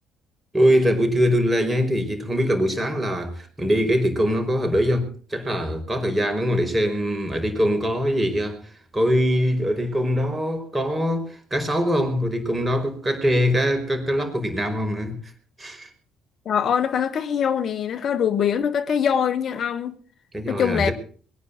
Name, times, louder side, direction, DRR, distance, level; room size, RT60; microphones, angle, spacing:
voice 1, 0.5-8.6 8.9-15.2 15.6-15.9 20.3-20.9, equal, 20° right, 5.2 m, -22 dB
voice 2, 16.5-19.9 20.5-20.9, left 8 dB, 55° left, 1.8 m, -23 dB
22.0 x 9.9 x 6.1 m
hypercardioid pair, 50°, 0 cm